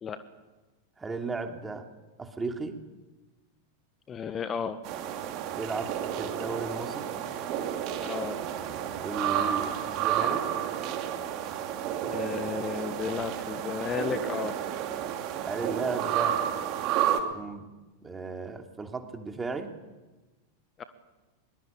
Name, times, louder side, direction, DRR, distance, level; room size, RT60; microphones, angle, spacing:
voice 1, 1.0-1.9 2.2-2.8 5.5-7.2 9.0-10.5 15.5-16.4 17.3-17.7 18.0-19.7, right 3 dB, 15° right, 5 dB, 2.8 m, -35 dB
voice 2, 4.1-4.8 8.0-8.4 12.1-14.6 20.8-20.9, left 6 dB, 25° left, 11 dB, 1.5 m, -33 dB
sound 1, 4.8-17.2, right 10 dB, 40° right, 2.9 m, -31 dB
23.5 x 22.5 x 8.6 m, 1.1 s
figure-of-eight pair, 90°, 0 cm